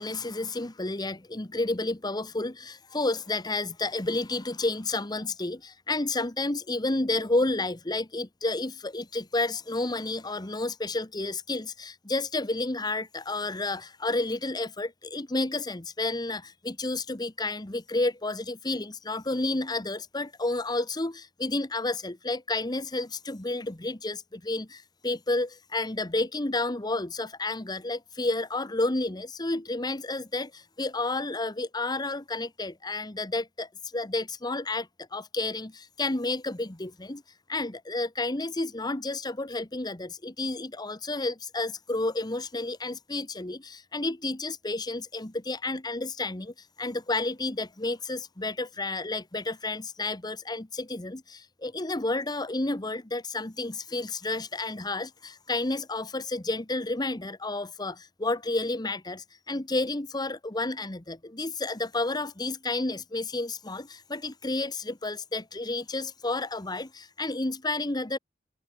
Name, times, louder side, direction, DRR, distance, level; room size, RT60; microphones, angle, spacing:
voice 1, 0.0-37.2 37.5-68.2, left 2 dB, 20° left, 1.2 m, -31 dB
head